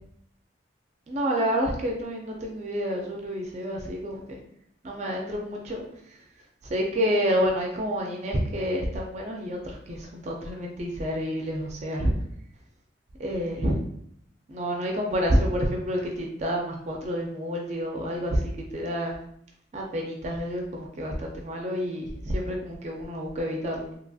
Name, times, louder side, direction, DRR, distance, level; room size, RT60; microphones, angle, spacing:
voice 1, 1.1-4.4 4.8-5.8 6.6-12.1 13.2-13.7 14.5-19.2 19.7-23.9, equal, 35° right, 0 dB, 0.4 m, -28 dB
2.8 x 2.6 x 2.3 m, 0.70 s
head